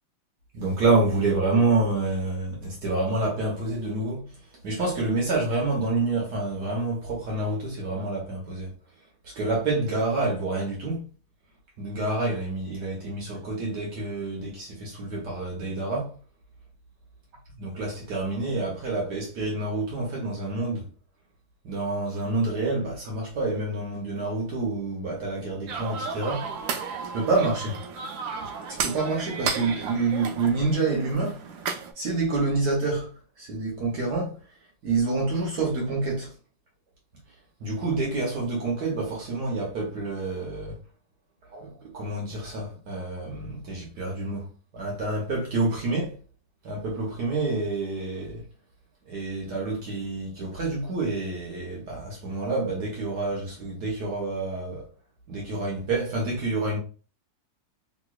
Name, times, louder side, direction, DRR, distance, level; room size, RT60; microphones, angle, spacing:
voice 1, 0.5-4.4 4.6-8.7 9.2-11.1 11.8-16.1 17.6-20.9 21.6-26.6 27.1-27.8 28.7-31.4 31.9-34.4 34.8-36.3 37.6-40.8 41.5-46.2 46.6-48.4 49.1-54.9 55.3-56.8, right 3 dB, 65° right, 1.4 m, -28 dB
sound 1, 25.7-31.9, right 5 dB, 80° right, 1.3 m, -33 dB
3.4 x 3.0 x 2.3 m
omnidirectional pair, 2.1 m